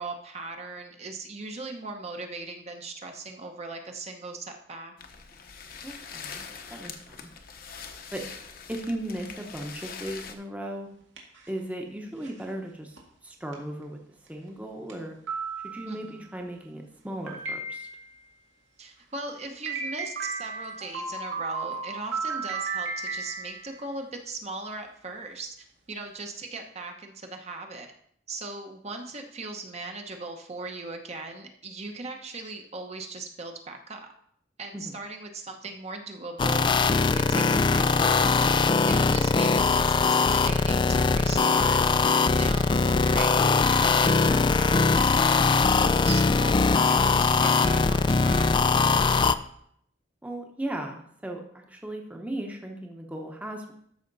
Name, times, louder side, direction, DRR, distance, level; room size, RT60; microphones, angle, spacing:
voice 1, 0.0-4.9 15.9-16.2 18.8-27.9 28.3-34.1 34.6-41.8 42.4-48.5, right 3 dB, 35° right, 4 dB, 0.9 m, -39 dB
sound 1, 5.0-10.3, left 6 dB, 55° left, 0.9 m, -43 dB
voice 2, 5.8-6.4 6.7-7.3 8.1-8.2 8.7-10.9 11.5-14.0 14.3-15.2 15.6-17.9 34.7-34.9 50.2-53.7, right 1 dB, 10° right, 2 dB, 0.9 m, -36 dB
sound 2, 11.0-11.6 12.2-12.4 13.0-13.1 13.5-13.6 14.3-14.4 14.9-15.0 15.3-16.1 17.3-18.2 19.7-23.9, right 4 dB, 90° right, 2.1 m, -34 dB
sound 3, 36.4-49.4, left 4 dB, 25° left, 0.3 m, -21 dB
13.0 x 5.7 x 4.0 m, 0.68 s
head